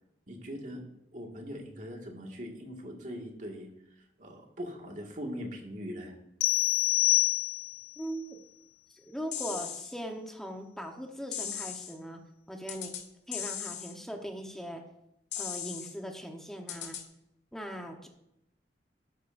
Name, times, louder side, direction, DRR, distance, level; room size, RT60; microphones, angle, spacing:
voice 1, 0.3-0.8 1.1-3.7 4.2-6.1, equal, 45° right, 0 dB, 2.0 m, -41 dB
sound 1, 6.4-7.9, left 19 dB, 60° left, 0.5 m, -26 dB
voice 2, 8.0-8.4 9.0-12.2 12.5-12.9 13.3-14.8 15.4-17.0 17.5-18.1, equal, 5° left, 2 dB, 1.1 m, -40 dB
sound 2, 9.3-9.9 11.3-11.9 12.7-13.0 13.3-13.9 15.3-15.9 16.7-17.0, left 9 dB, 80° left, 1.6 m, -37 dB
13.0 x 12.0 x 2.6 m, 0.83 s
head